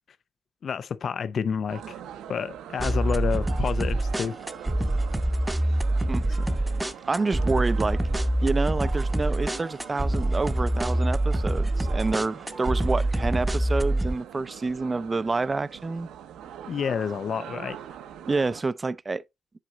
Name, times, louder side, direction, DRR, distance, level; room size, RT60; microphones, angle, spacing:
voice 1, 0.6-2.0 2.3-4.4 6.3-6.8 16.7-17.8, left 7 dB, 60° left, 0.5 m, -29 dB
sound 1, 1.7-18.6, right 9 dB, 85° right, 0.8 m, -43 dB
sound 2, 2.8-14.1, right 1 dB, 10° right, 0.8 m, -25 dB
voice 2, 7.1-8.0 8.4-16.1 18.3-19.2, right 3 dB, 30° right, 0.4 m, -28 dB
7.6 x 4.9 x 4.0 m
cardioid pair, 70°, 0 cm